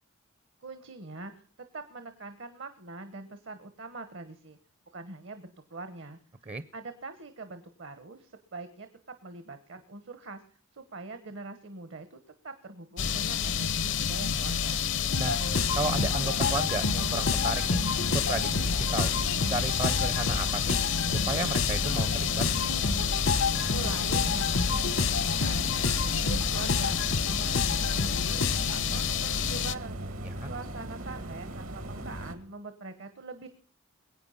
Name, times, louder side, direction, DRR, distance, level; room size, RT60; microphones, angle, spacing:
voice 1, 0.6-1.4 1.7-4.6 4.9-6.2 6.7-10.4 10.7-12.2 12.4-14.9 23.7-25.7 26.2-27.0 27.3-30.0 30.4-33.5, right 3 dB, 60° right, 10 dB, 1.1 m, -43 dB
sound 1, 13.0-29.7, left 7 dB, 60° left, 0.6 m, -29 dB
sound 2, 15.1-28.8, left 4 dB, 80° left, 1.1 m, -31 dB
sound 3, 15.3-32.4, right 1 dB, 75° right, 1.9 m, -39 dB
voice 2, 15.7-17.8 18.1-19.1 19.5-20.8 21.1-22.5 30.2-30.5, right 3 dB, 30° right, 14 dB, 0.6 m, -33 dB
21.5 x 8.8 x 5.6 m, 0.43 s
head